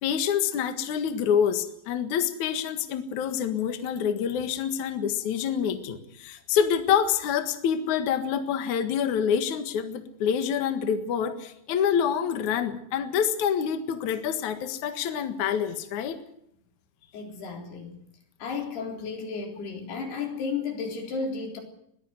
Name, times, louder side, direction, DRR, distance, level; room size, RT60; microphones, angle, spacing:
voice 1, 0.0-16.2, left 8 dB, 60° left, 8 dB, 2.7 m, -27 dB
voice 2, 17.1-18.0 18.4-21.6, left 5 dB, 90° left, 3 dB, 5.9 m, -33 dB
21.5 x 16.0 x 7.9 m, 0.73 s
omnidirectional pair, 4.5 m